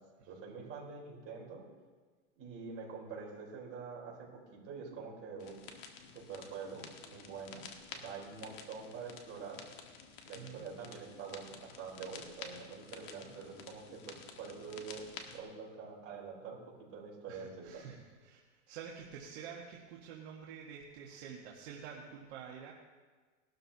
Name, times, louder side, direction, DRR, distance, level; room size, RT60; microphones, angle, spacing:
voice 1, 0.3-1.6 2.4-5.6 6.1-7.6 7.9-9.6 10.3-16.6 16.9-17.8, right 5 dB, 35° right, -3 dB, 3.9 m, -46 dB
sound 1, 5.4-15.4, left 6 dB, 50° left, 1.6 m, -51 dB
voice 2, 10.3-10.7 17.3-22.7, right 7 dB, 55° right, -2 dB, 1.7 m, -48 dB
19.0 x 12.5 x 2.8 m, 1.4 s
supercardioid pair, 140°, 39 cm